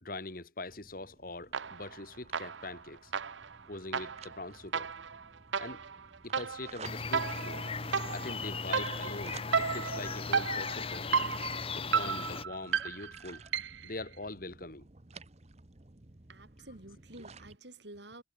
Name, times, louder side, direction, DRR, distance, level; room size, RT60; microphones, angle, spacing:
voice 1, 0.0-3.1 3.7-4.9 5.6-5.8 6.2-7.6 8.1-11.5 11.8-13.4 13.8-14.9, left 2 dB, 50° left, 2.5 m, -43 dB
sound 1, 0.7-17.6, right 4 dB, 35° right, 1.1 m, -54 dB
sound 2, 1.5-2.0 2.3-13.9, right 6 dB, 85° right, 0.9 m, -34 dB
Spring in German Woods, 6.8-12.4, left 4 dB, 30° left, 1.0 m, -37 dB
voice 2, 16.3-18.2, right 2 dB, 70° right, 4.3 m, -50 dB
head